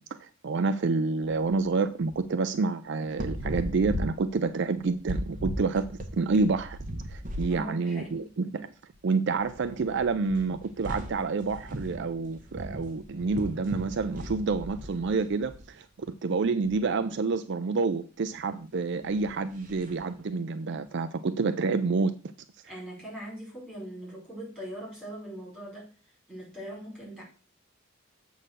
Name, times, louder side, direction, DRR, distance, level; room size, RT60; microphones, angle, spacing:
voice 1, 0.0-6.8 7.1-8.7 9.0-22.2, right 4 dB, 55° right, 0.4 m, -28 dB
sound 1, 1.2-1.6 2.0-2.2 3.1-7.6 8.0-8.1 8.9-9.0 9.3-15.7 16.4-16.8 18.9-20.1, equal, 40° right, 1.3 m, -38 dB
voice 2, 7.5-8.3 22.7-25.9 26.3-27.2, equal, 5° left, 4.9 m, -41 dB
7.6 x 4.0 x 6.6 m
head